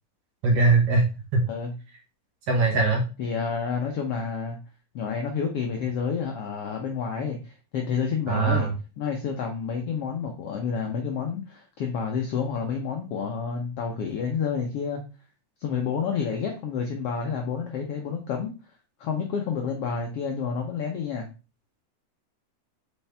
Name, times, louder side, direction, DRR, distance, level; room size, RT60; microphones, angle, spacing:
voice 1, 0.4-1.1 1.3-1.4 2.5-3.1 8.3-8.7, right 3 dB, 55° right, 1 dB, 2.0 m, -21 dB
voice 2, 3.2-4.6 4.9-8.7 9.0-15.0 15.6-18.5 19.0-21.3, left 6 dB, 70° left, 2 dB, 1.4 m, -29 dB
7.2 x 4.6 x 3.4 m, 0.32 s
omnidirectional pair, 3.7 m